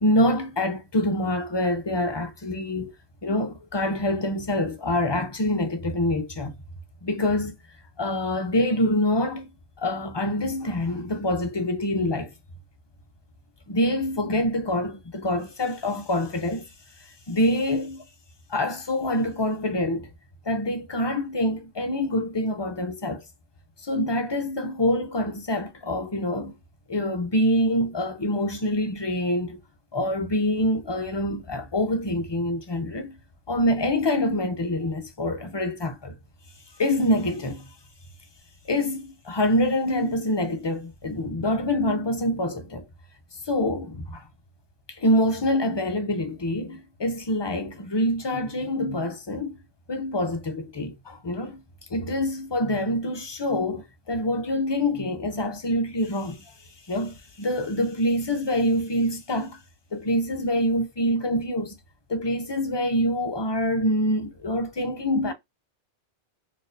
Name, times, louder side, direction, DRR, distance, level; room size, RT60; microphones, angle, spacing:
voice 1, 0.0-2.9 3.2-6.6 7.0-7.6 8.0-9.5 9.8-12.3 13.7-16.7 17.3-18.0 18.5-20.1 20.5-23.2 23.8-26.5 26.9-29.6 29.9-33.2 33.5-36.2 36.8-37.7 38.7-42.8 43.4-44.3 44.9-49.6 49.9-51.6 51.9-56.4 56.9-59.6 59.9-61.8 62.1-65.3, left 1 dB, 40° left, 0.3 m, -25 dB
4.1 x 2.6 x 2.5 m
omnidirectional pair, 1.1 m